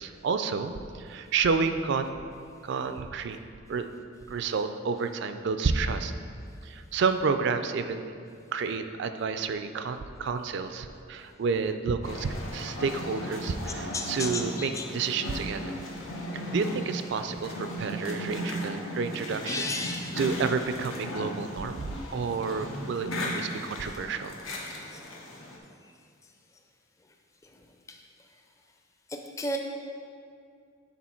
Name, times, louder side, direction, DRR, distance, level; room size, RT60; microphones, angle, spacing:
voice 1, 0.0-2.2 2.6-3.4 3.7-3.9 4.3-6.1 6.6-8.2 8.5-15.8 16.3-19.7 20.2-24.3, right 5 dB, 60° right, 9 dB, 0.4 m, -30 dB
sound 1, 12.0-25.6, left 1 dB, 80° left, 1.0 m, -36 dB
voice 2, 13.9-14.8 19.5-20.2 24.9-25.0 27.9-28.0 29.1-29.6, left 2 dB, 15° left, 3 dB, 0.4 m, -33 dB
8.5 x 3.8 x 4.3 m, 2.4 s
head